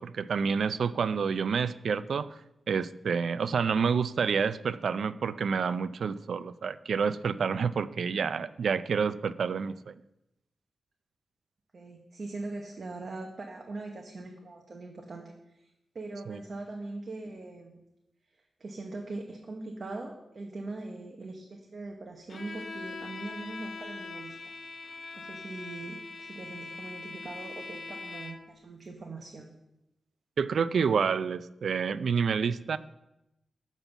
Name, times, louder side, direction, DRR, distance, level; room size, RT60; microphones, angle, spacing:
voice 1, 0.0-2.4 2.7-9.9 16.3-16.4 30.4-32.8, right 6 dB, 75° right, 15 dB, 0.3 m, -28 dB
voice 2, 11.7-15.7 15.9-17.8 18.3-24.5 25.1-29.5, right 2 dB, 50° right, 2 dB, 1.0 m, -41 dB
Bowed string instrument, 22.3-28.6, left 3 dB, 50° left, 0.8 m, -42 dB
7.2 x 5.4 x 7.1 m, 0.89 s
wide cardioid pair, 100°, 0 cm